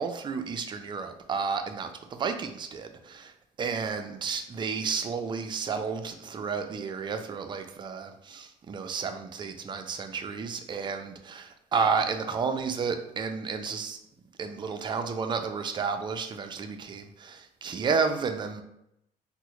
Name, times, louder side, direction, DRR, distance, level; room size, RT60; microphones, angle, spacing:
voice 1, 0.0-3.3 3.6-14.0 14.4-18.6, right 5 dB, 30° right, 6 dB, 0.3 m, -31 dB
3.6 x 2.1 x 3.0 m, 0.81 s
cardioid pair, 110°, 17 cm